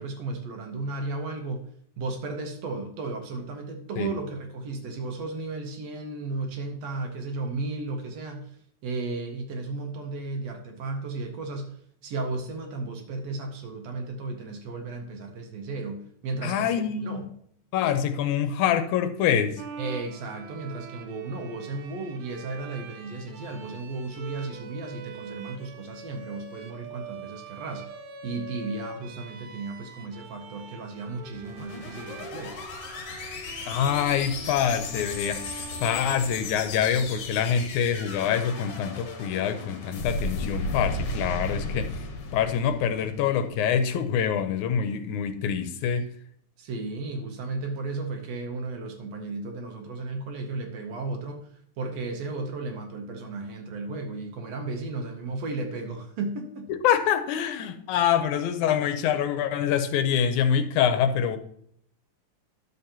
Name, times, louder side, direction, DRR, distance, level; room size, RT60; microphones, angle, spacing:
voice 1, 0.0-1.6 2.0-16.7 17.0-17.3 19.8-27.9 28.2-32.6 46.6-56.7, right 3 dB, 70° right, 4 dB, 1.8 m, -34 dB
voice 2, 16.4-17.3 17.7-19.6 33.7-42.1 42.3-46.1 56.8-61.4, left 8 dB, 85° left, 9 dB, 2.1 m, -25 dB
Bowed string instrument, 19.6-37.0, right 5 dB, 85° right, 1.1 m, -44 dB
sound 1, 31.2-43.6, left 2 dB, 60° left, 1.7 m, -35 dB
11.0 x 6.7 x 2.8 m, 0.67 s
omnidirectional pair, 3.5 m